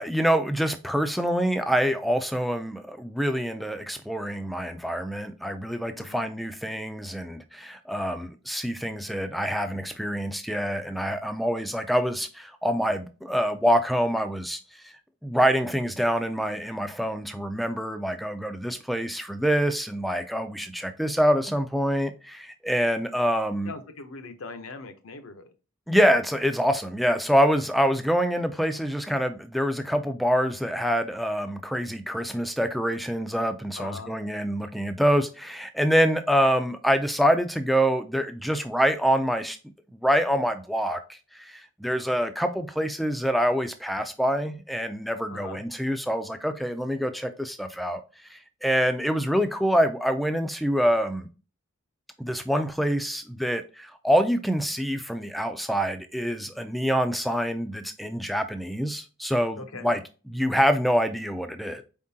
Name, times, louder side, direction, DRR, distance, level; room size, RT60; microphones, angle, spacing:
voice 1, 0.0-14.9 15.2-23.7 25.9-39.6 39.9-48.0 48.3-51.3 52.2-60.0 60.3-61.8, equal, ahead, 0.3 m, -26 dB
voice 2, 6.0-6.3 23.6-25.4 33.8-34.1 45.3-45.6 59.6-60.0, left 3 dB, 75° left, 0.7 m, -41 dB
4.4 x 3.7 x 2.7 m
head